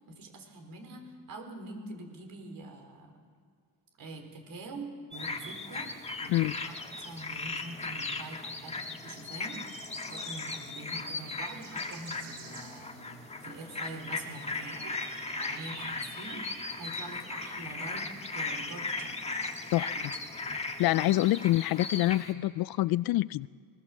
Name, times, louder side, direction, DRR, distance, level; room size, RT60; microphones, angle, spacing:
voice 1, 0.1-3.1 4.0-5.9 6.2-6.8 7.0-19.3 19.9-20.2 20.9-21.2, right 2 dB, 55° right, 4 dB, 4.7 m, -45 dB
sound 1, 5.1-22.3, left 3 dB, 15° left, 1.6 m, -37 dB
sound 2, 11.3-17.5, right 5 dB, 90° right, 4.7 m, -50 dB
voice 2, 20.8-23.5, left 16 dB, 65° left, 20 dB, 0.5 m, -26 dB
21.0 x 20.0 x 7.6 m, 2.2 s
cardioid pair, 115°, 39 cm